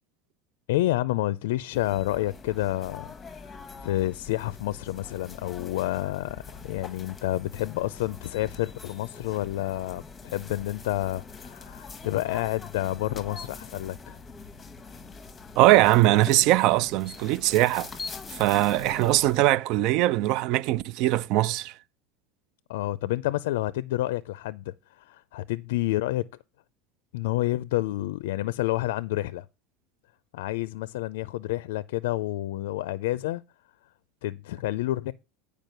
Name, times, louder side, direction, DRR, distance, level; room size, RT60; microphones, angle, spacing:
voice 1, 0.7-3.6 3.8-14.2 22.7-26.3 27.1-29.5 30.3-33.4 34.2-35.1, left 16 dB, 85° left, 0.4 m, -29 dB
sound 1, 1.7-19.4, left 4 dB, 20° left, 0.9 m, -43 dB
voice 2, 15.6-17.9 18.3-21.7, right 16 dB, 55° right, 0.4 m, -21 dB
9.2 x 5.0 x 6.5 m
supercardioid pair, 140°, 0 cm